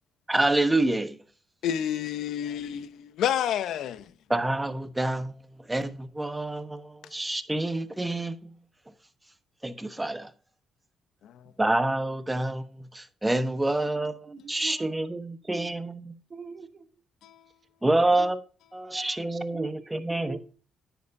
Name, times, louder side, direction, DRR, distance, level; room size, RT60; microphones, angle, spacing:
voice 1, 0.3-1.2 4.3-5.4 5.7-8.5 9.6-10.3 11.6-16.1 17.8-18.4 18.7-20.4, right 2 dB, 10° right, 1.0 m, -27 dB
voice 2, 1.6-4.1 11.2-11.5 17.2-17.4, left 10 dB, 80° left, 0.8 m, -30 dB
voice 3, 13.9-15.1 15.5-15.7 16.3-17.0 17.9-18.3 18.8-20.4, right 4 dB, 35° right, 1.3 m, -42 dB
10.0 x 9.4 x 2.7 m
cardioid pair, 90°, 0 cm